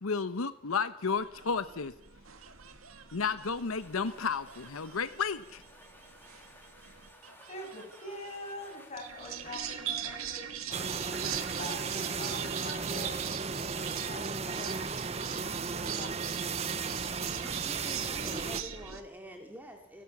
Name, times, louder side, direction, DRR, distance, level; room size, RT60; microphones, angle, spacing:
voice 1, 0.0-1.9 3.1-5.6, left 5 dB, 85° left, 13 dB, 0.8 m, -32 dB
sound 1, 1.1-19.0, right 8 dB, 85° right, 2.0 m, -41 dB
sound 2, 3.2-10.7, left 1 dB, 10° left, 2.7 m, -58 dB
voice 2, 7.5-11.0 11.6-14.7 15.5-16.4, left 1 dB, 30° left, 1 dB, 7.4 m, -45 dB
sound 3, 10.7-18.6, right 5 dB, 30° right, 0.7 m, -35 dB
voice 3, 17.4-20.0, equal, 10° right, 3 dB, 2.4 m, -47 dB
29.5 x 12.5 x 7.2 m, 0.78 s
head